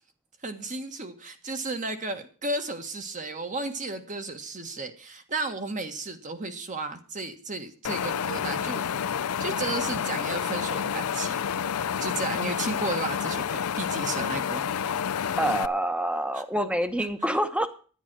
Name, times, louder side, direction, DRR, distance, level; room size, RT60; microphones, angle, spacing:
voice 1, 0.4-8.8 9.4-11.4 12.0-15.4 16.3-16.4, right 3 dB, 35° right, 7 dB, 1.6 m, -34 dB
Wind, 7.8-15.7, left 7 dB, 75° left, 0.5 m, -29 dB
voice 2, 15.4-17.7, right 1 dB, 5° right, 10 dB, 1.1 m, -26 dB
11.0 x 10.5 x 6.2 m, 0.39 s
head